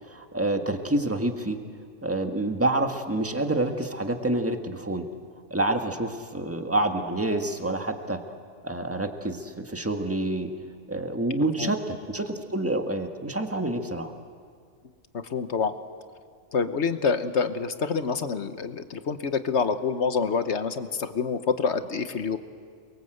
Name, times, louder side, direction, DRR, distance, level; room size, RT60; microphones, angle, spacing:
voice 1, 0.1-1.6 2.0-5.1 5.5-8.2 8.6-10.5 10.9-14.1, right 2 dB, 10° right, 4 dB, 1.5 m, -27 dB
voice 2, 15.1-15.7 16.5-22.4, left 5 dB, 60° left, 10 dB, 1.3 m, -27 dB
29.0 x 22.5 x 7.9 m, 2.1 s
omnidirectional pair, 1.4 m